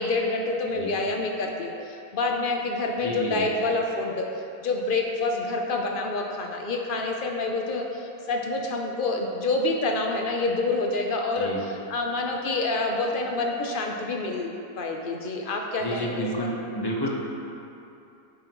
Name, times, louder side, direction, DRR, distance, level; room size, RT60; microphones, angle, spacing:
voice 1, 0.0-4.3 4.6-14.5 14.8-16.5, left 2 dB, 80° left, 2 dB, 0.4 m, -27 dB
voice 2, 3.0-3.5 11.4-11.6 15.8-17.1, equal, 20° left, -2 dB, 0.8 m, -30 dB
10.5 x 9.4 x 3.1 m, 2.8 s
omnidirectional pair, 1.8 m